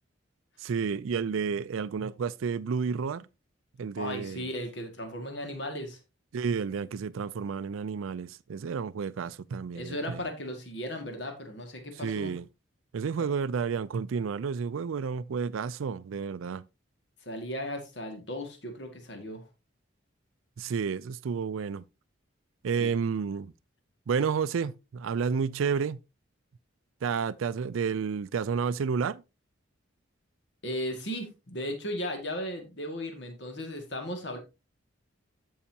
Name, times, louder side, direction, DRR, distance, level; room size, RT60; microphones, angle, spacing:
voice 1, 0.6-3.3 3.8-4.5 6.3-10.2 12.0-12.5 12.9-16.6 20.6-21.8 22.6-23.5 24.1-26.0 27.0-29.2, right 6 dB, 80° right, 0.4 m, -31 dB
voice 2, 4.0-6.0 9.7-12.3 13.2-13.3 17.2-19.4 22.8-22.9 30.6-34.4, equal, 55° left, 2.0 m, -36 dB
14.0 x 5.6 x 2.8 m
head